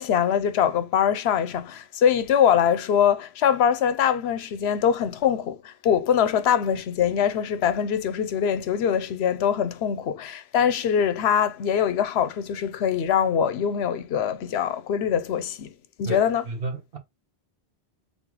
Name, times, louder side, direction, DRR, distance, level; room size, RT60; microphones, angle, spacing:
voice 1, 0.0-15.7 16.0-16.4, left 8 dB, 80° left, 0.8 m, -23 dB
voice 2, 16.0-17.0, right 3 dB, 60° right, 1.2 m, -32 dB
3.9 x 3.8 x 2.9 m
omnidirectional pair, 1.1 m